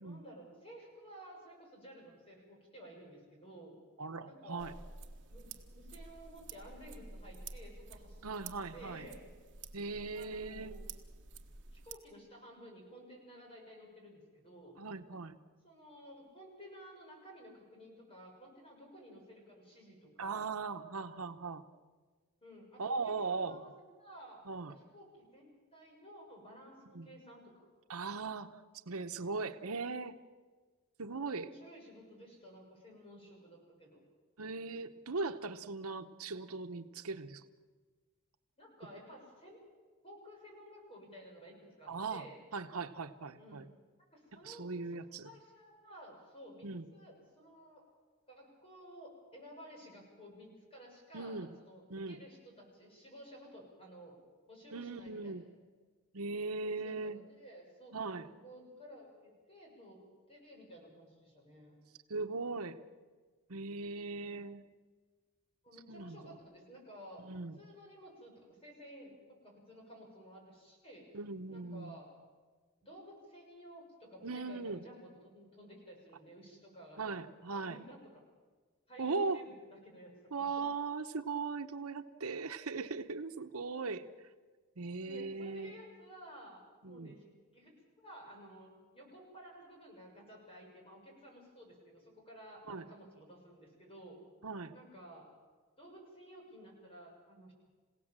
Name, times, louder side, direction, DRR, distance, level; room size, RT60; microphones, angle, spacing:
voice 1, 0.0-3.8 4.2-4.7 5.3-9.3 10.1-10.9 11.7-14.8 15.6-20.5 22.4-23.7 24.0-27.7 31.4-34.0 38.6-39.6 40.0-42.3 43.4-43.6 44.1-44.7 45.2-47.8 48.3-54.2 54.5-55.3 56.6-60.0 60.3-61.8 64.2-64.4 65.6-67.2 67.6-71.1 71.5-72.1 72.8-77.1 77.5-78.0 78.9-79.5 79.8-80.6 85.0-87.2 87.5-94.2 94.7-95.3 95.8-97.5, equal, 25° left, 0 dB, 7.0 m, -54 dB
voice 2, 4.0-4.7 8.2-9.1 9.7-10.7 14.8-15.4 20.2-21.6 22.8-23.7 24.5-24.7 26.9-27.1 27.9-30.2 31.0-31.5 34.4-37.5 41.9-42.3 42.5-43.7 44.4-45.3 46.6-46.9 51.1-51.5 51.9-52.2 54.7-55.4 56.1-57.2 57.9-58.3 62.1-62.8 63.5-64.6 65.9-66.4 67.2-67.6 71.1-71.9 74.2-74.8 77.0-77.8 79.0-79.4 80.3-84.1 84.8-85.8 86.8-87.1 92.7-92.8 94.4-94.7, right 4 dB, 85° right, 8 dB, 1.0 m, -39 dB
sound 1, 4.6-11.9, right 4 dB, 55° right, 1.4 m, -50 dB
27.5 x 17.0 x 7.5 m, 1.4 s
head